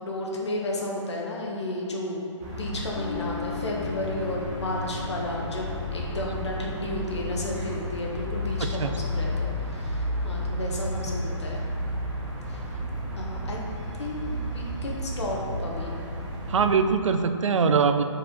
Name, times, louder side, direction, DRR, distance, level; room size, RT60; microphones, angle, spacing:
voice 1, 0.0-2.2 2.5-11.6 12.5-12.6 13.2-13.6 14.0-16.0, left 1 dB, 60° left, -2 dB, 1.3 m, -33 dB
sound 1, 2.4-16.7, equal, 25° right, 1.3 m, -32 dB
sound 2, 2.9-9.7, left 8 dB, 80° left, 1.3 m, -42 dB
voice 2, 8.6-9.0 16.5-18.0, right 5 dB, 75° right, 9 dB, 0.5 m, -22 dB
4.9 x 4.8 x 5.2 m, 2.5 s
hypercardioid pair, 175°, 16 cm